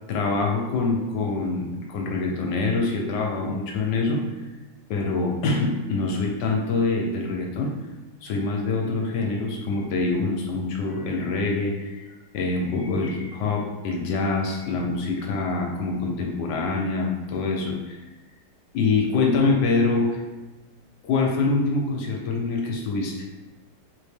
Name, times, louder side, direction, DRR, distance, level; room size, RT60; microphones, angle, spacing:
voice 1, 0.1-4.3 4.9-7.8 8.2-12.0 12.3-18.0 18.7-20.2 21.0-23.3, left 3 dB, 75° left, 1 dB, 1.1 m, -25 dB
3.8 x 2.7 x 3.4 m, 1.1 s
omnidirectional pair, 2.0 m